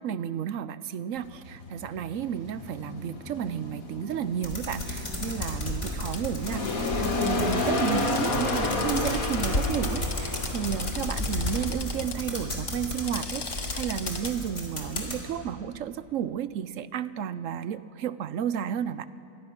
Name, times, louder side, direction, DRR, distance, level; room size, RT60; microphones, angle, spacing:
voice 1, 0.0-19.1, right 9 dB, 65° right, 15 dB, 1.0 m, -32 dB
sound 1, 1.2-15.6, left 2 dB, 65° left, 2.4 m, -33 dB
sound 2, 4.4-15.2, left 1 dB, 50° left, 3.7 m, -33 dB
Drill, 6.1-6.2 7.3-12.2 12.9-14.3, left 3 dB, 25° left, 0.5 m, -39 dB
27.5 x 23.0 x 6.0 m, 2.7 s
omnidirectional pair, 1.6 m